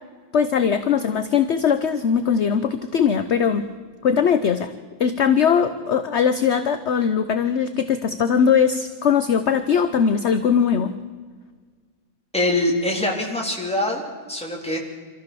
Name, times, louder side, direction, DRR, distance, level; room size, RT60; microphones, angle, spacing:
voice 1, 0.3-3.6 4.0-4.7 5.0-10.9, left 7 dB, 50° left, 10 dB, 1.1 m, -20 dB
voice 2, 12.3-14.8, left 1 dB, 5° left, -1 dB, 3.8 m, -24 dB
26.0 x 15.0 x 7.1 m, 1.5 s
omnidirectional pair, 1.6 m